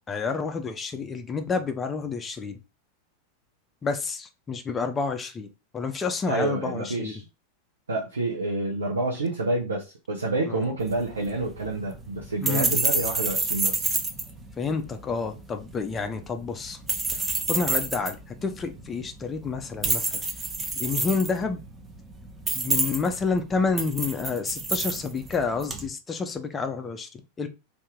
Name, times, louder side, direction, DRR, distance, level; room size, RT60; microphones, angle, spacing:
voice 1, 0.1-2.6 3.8-5.5 5.7-7.1 10.5-10.6 12.4-12.7 14.6-16.8 17.5-18.2 18.4-20.2 20.8-21.6 22.5-27.1 27.4-27.5, left 4 dB, 20° left, 0.5 m, -29 dB
voice 2, 6.3-7.3 7.9-13.9, right 2 dB, 70° right, 0.8 m, -28 dB
sound 1, 10.8-25.9, right 3 dB, 15° right, 0.7 m, -30 dB
2.7 x 2.7 x 3.6 m
figure-of-eight pair, 90°, 0 cm